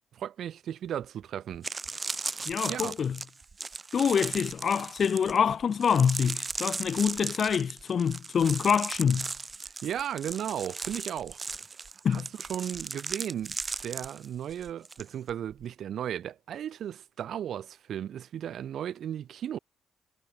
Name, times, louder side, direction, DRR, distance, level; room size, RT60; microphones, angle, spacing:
voice 1, 0.1-1.7 1.9-2.2 2.7-2.9 9.6-11.4 11.9-19.6, right 10 dB, 65° right, 7.3 m, -36 dB
sound 1, 1.0-1.1 1.5-15.0 15.3-15.6, right 4 dB, 30° right, 2.9 m, -37 dB
voice 2, 2.5-3.2 3.9-9.3 12.0-12.3, left 7 dB, 50° left, 0.8 m, -26 dB
cardioid pair, 90°, 0 cm